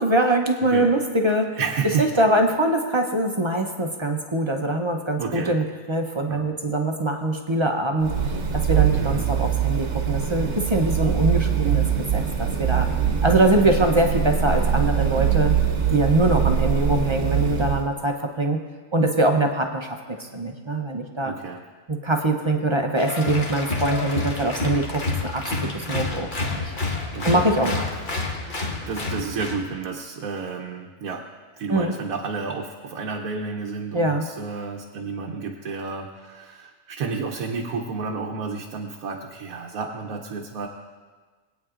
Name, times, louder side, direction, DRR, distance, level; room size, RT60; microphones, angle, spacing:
voice 1, 0.0-1.6 2.0-8.1 8.5-12.9 13.2-15.5 15.9-18.6 18.9-21.3 21.9-26.7 27.2-27.8 31.7-31.9 33.9-34.3, right 1 dB, 30° right, 3 dB, 0.6 m, -23 dB
voice 2, 1.6-2.2 5.2-5.6 6.3-6.5 8.9-9.3 21.2-21.6 27.1-28.0 28.9-31.3 31.6-40.7, right 5 dB, 90° right, 1 dB, 1.2 m, -31 dB
sound 1, 8.0-17.9, right 8 dB, 60° right, 1.1 m, -23 dB
Applause, 23.0-29.6, left 3 dB, 40° left, 1.2 m, -29 dB
20.5 x 9.2 x 2.5 m, 1.4 s
omnidirectional pair, 1.4 m